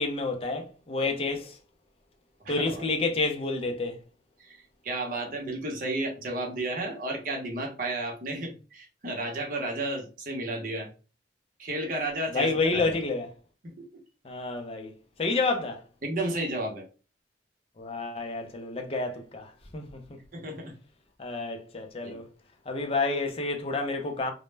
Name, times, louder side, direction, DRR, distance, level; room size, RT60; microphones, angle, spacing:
voice 1, 0.0-1.6 2.5-4.0 12.3-13.3 14.2-14.9 15.2-15.8 17.8-20.0 21.2-22.3 22.7-24.3, left 3 dB, 30° left, 0.4 m, -29 dB
voice 2, 2.4-2.8 4.4-10.9 11.6-13.0 13.6-13.7 16.0-16.8 20.3-20.7 22.0-22.2, right 2 dB, 50° right, 0.7 m, -33 dB
2.1 x 2.0 x 3.2 m
head